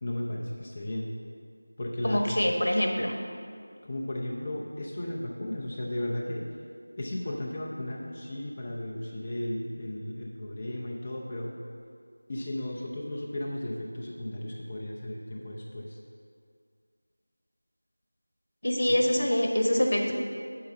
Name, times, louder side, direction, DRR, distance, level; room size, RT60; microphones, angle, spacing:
voice 1, 0.0-1.1 1.8-2.4 3.8-6.5 7.0-11.5 12.3-16.0 18.9-19.0, left 1 dB, 25° left, -3 dB, 0.5 m, -35 dB
voice 2, 2.0-3.1 18.6-20.1, left 1 dB, 80° left, 2 dB, 1.2 m, -25 dB
6.8 x 4.7 x 6.6 m, 2.2 s
figure-of-eight pair, 175°, 0 cm